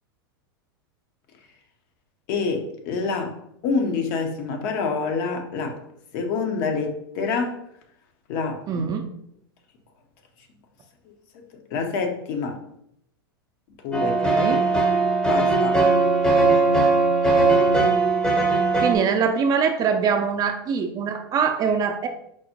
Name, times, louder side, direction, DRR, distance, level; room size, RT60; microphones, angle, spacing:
voice 1, 2.3-3.3 3.6-5.8 6.1-7.6 8.3-8.8 11.7-12.6 13.8-14.2 15.2-15.8, left 4 dB, 55° left, 4 dB, 0.6 m, -26 dB
voice 2, 8.7-9.0 14.2-14.6 18.8-22.1, right 6 dB, 30° right, 6 dB, 0.4 m, -23 dB
sound 1, 13.9-19.0, right 3 dB, 5° left, 0.6 m, -19 dB
4.5 x 2.0 x 2.8 m, 0.75 s
hypercardioid pair, 95°, 12 cm